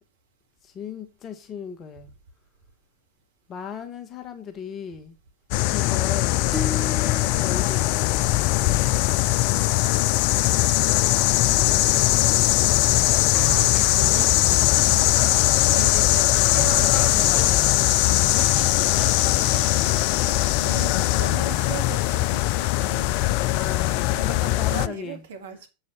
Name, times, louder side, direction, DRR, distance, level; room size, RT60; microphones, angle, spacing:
voice 1, 0.6-2.1 3.5-5.2 5.7-6.4 7.4-8.3 12.9-13.3 14.0-14.2 14.5-15.8 16.8-17.9 23.5-25.2, left 7 dB, 25° left, 1.2 m, -37 dB
sound 1, 5.5-24.9, left 17 dB, 45° left, 0.4 m, -20 dB
voice 2, 5.8-6.2 11.4-11.6 11.9-12.7 13.7-14.4 14.7-16.9 20.2-23.6 24.1-25.7, right 5 dB, 60° right, 2.0 m, -38 dB
sound 2, 6.5-8.9, left 2 dB, 5° left, 1.2 m, -36 dB
sound 3, 13.3-19.7, right 6 dB, 40° right, 2.3 m, -36 dB
7.7 x 5.5 x 5.9 m
figure-of-eight pair, 90°, 0 cm